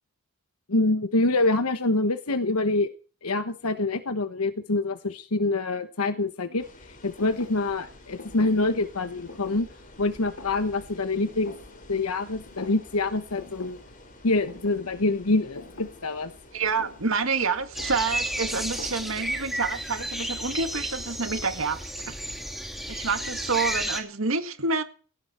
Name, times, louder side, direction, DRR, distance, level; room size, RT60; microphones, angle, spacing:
voice 1, 0.7-2.9 3.2-9.7 10.0-11.6 11.9-13.8 14.2-16.3, left 2 dB, 85° left, 1.2 m, -26 dB
sound 1, 6.6-18.7, left 1 dB, 40° left, 5.0 m, -50 dB
Thump thud, 7.2-12.2 12.5-13.1 13.4-19.5, left 2 dB, 70° left, 3.2 m, -47 dB
voice 2, 16.5-22.2 22.9-24.8, right 4 dB, 65° right, 1.9 m, -28 dB
sound 2, 17.7-24.0, equal, ahead, 2.7 m, -32 dB
18.5 x 16.0 x 4.4 m
head